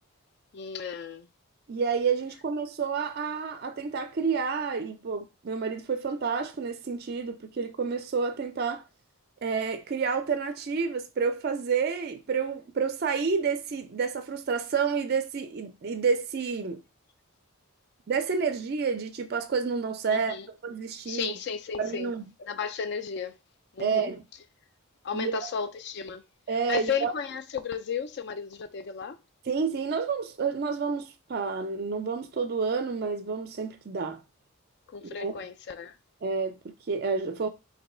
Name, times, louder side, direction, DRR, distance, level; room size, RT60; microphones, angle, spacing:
voice 1, 0.5-1.3 20.1-20.5 21.1-22.1 22.4-23.4 23.7-24.1 25.0-26.2 26.7-29.2 34.9-36.0, left 6 dB, 50° left, 0.3 m, -34 dB
voice 2, 1.7-8.8 9.4-16.8 18.1-20.4 20.6-21.3 21.8-22.3 23.8-24.2 25.1-25.4 26.5-27.1 29.5-34.2 35.0-35.4 36.2-37.5, right 5 dB, 45° right, 0.4 m, -29 dB
3.0 x 2.7 x 4.2 m
head